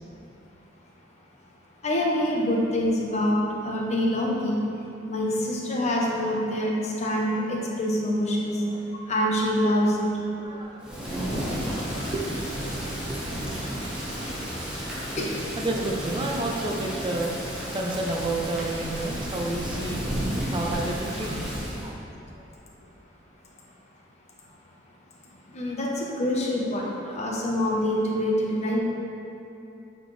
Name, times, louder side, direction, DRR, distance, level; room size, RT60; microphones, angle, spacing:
voice 1, 1.8-4.6 5.1-8.6 9.1-10.1 15.2-15.3 25.5-28.8, left 1 dB, 35° left, -2 dB, 0.9 m, -25 dB
voice 2, 10.3-13.9 15.6-20.0 20.5-22.0, right 2 dB, 25° right, 0 dB, 0.6 m, -32 dB
Thunder / Rain, 10.8-21.9, equal, 5° right, 1.2 m, -32 dB
8.0 x 4.5 x 3.2 m, 2.9 s
head